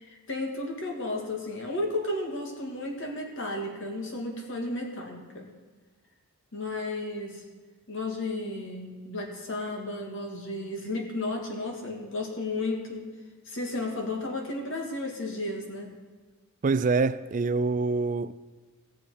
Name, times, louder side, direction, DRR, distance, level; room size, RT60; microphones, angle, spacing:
voice 1, 0.0-5.5 6.5-7.4 7.9-13.1 13.5-15.9, left 2 dB, 55° left, 2.0 m, -33 dB
voice 2, 16.6-18.3, right 4 dB, 35° right, 0.3 m, -25 dB
18.0 x 7.0 x 4.9 m
head